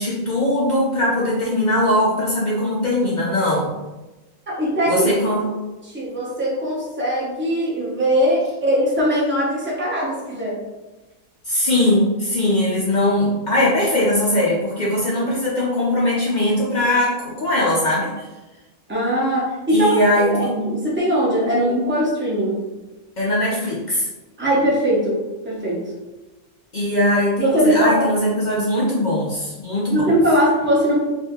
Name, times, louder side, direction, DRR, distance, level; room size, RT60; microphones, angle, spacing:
voice 1, 0.0-3.7 4.9-5.4 11.4-18.3 19.7-20.5 23.2-24.1 26.7-30.1, left 1 dB, 65° left, -5 dB, 0.4 m, -20 dB
voice 2, 4.6-5.1 5.8-10.6 18.9-22.6 24.4-25.8 27.4-28.1 29.9-31.0, equal, 15° right, -5 dB, 0.4 m, -20 dB
2.7 x 2.5 x 3.5 m, 1.1 s
omnidirectional pair, 1.6 m